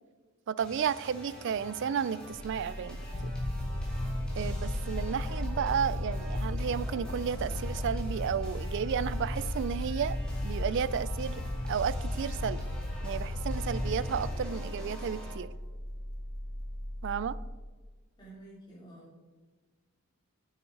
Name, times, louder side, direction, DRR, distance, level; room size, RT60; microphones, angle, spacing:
voice 1, 0.5-3.3 4.3-10.2 10.4-11.4 11.7-12.6 13.0-15.5 17.0-17.4, right 7 dB, 55° right, 18 dB, 0.3 m, -32 dB
sound 1, 0.6-15.3, equal, 5° left, 2.3 m, -47 dB
sound 2, 2.3-17.5, equal, 70° left, 2.2 m, -39 dB
sound 3, 3.1-14.4, left 1 dB, 45° left, 0.7 m, -36 dB
voice 2, 18.2-19.2, right 1 dB, 20° left, -8 dB, 3.1 m, -50 dB
8.4 x 7.1 x 4.7 m, 1.3 s
head